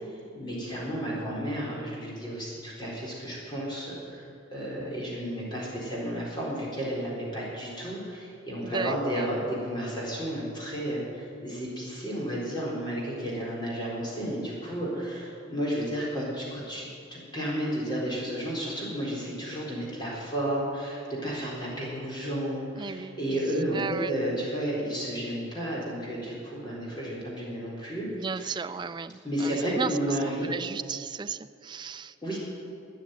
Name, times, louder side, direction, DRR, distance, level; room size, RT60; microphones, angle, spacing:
voice 1, 0.1-4.2 4.5-28.1 28.4-28.5 29.2-30.5 32.2-32.4, equal, 25° left, -5 dB, 4.2 m, -32 dB
voice 2, 8.6-9.3 22.8-23.4 23.7-24.1 28.1-30.2 30.5-32.4, right 5 dB, 25° right, 13 dB, 0.3 m, -35 dB
13.0 x 9.8 x 9.2 m, 2.5 s
head